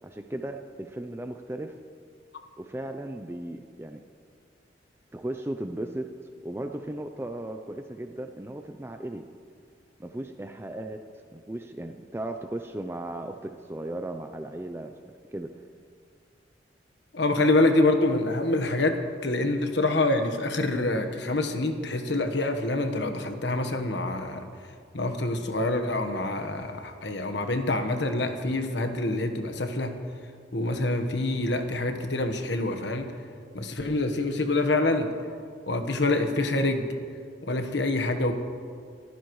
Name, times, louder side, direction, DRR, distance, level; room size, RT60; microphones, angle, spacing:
voice 1, 0.0-1.7 2.6-4.0 5.1-6.1 6.4-9.2 10.0-11.0 11.3-15.5, right 1 dB, 15° right, 6 dB, 0.5 m, -36 dB
voice 2, 17.1-18.9 19.2-24.4 24.9-29.9 30.5-33.1 33.5-35.1 35.7-36.9 37.4-38.4, left 2 dB, 70° left, 6 dB, 1.3 m, -26 dB
23.5 x 15.0 x 3.2 m, 2.2 s
head